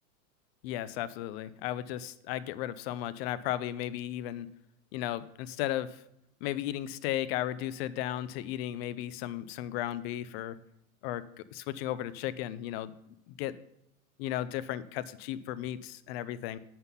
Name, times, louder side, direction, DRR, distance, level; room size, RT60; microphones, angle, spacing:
voice 1, 0.6-4.5 4.9-6.0 6.4-10.6 11.0-11.2 11.5-12.9 13.4-13.5 14.2-16.6, left 13 dB, 45° left, 14 dB, 0.6 m, -35 dB
7.7 x 5.9 x 5.5 m, 0.79 s
hypercardioid pair, 125°, 42 cm